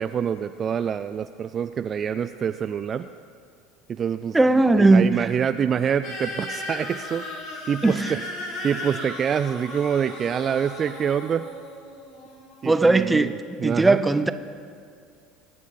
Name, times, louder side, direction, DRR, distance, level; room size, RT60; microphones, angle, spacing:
voice 1, 0.0-3.1 3.9-4.4 4.8-7.2 7.7-8.2 8.6-11.5 12.6-13.3 13.6-14.0, right 8 dB, 35° right, 0.4 m, -26 dB
voice 2, 4.3-5.2 7.8-8.1 12.6-13.3 13.6-14.3, right 2 dB, 10° right, 0.7 m, -18 dB
sound 1, 6.0-12.8, left 1 dB, 55° left, 3.2 m, -36 dB
24.0 x 9.2 x 4.0 m
figure-of-eight pair, 70°, 0 cm